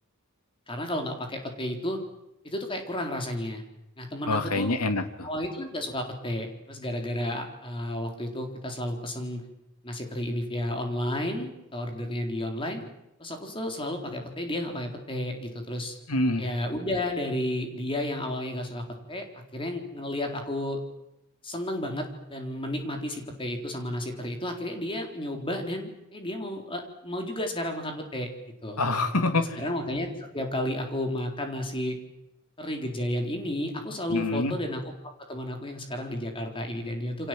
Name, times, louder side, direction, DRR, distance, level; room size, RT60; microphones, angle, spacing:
voice 1, 0.7-2.0 2.4-3.6 4.0-4.8 5.2-9.4 9.8-12.8 13.2-15.9 16.4-19.2 19.5-20.8 21.4-28.3 28.6-28.8 29.4-32.0 32.6-34.8 35.3-37.3, left 1 dB, 25° left, 3 dB, 4.0 m, -32 dB
voice 2, 4.3-5.3 16.1-16.5 28.8-29.6 34.1-34.6, left 2 dB, 85° left, 8 dB, 2.5 m, -26 dB
28.5 x 25.5 x 7.8 m, 0.86 s
head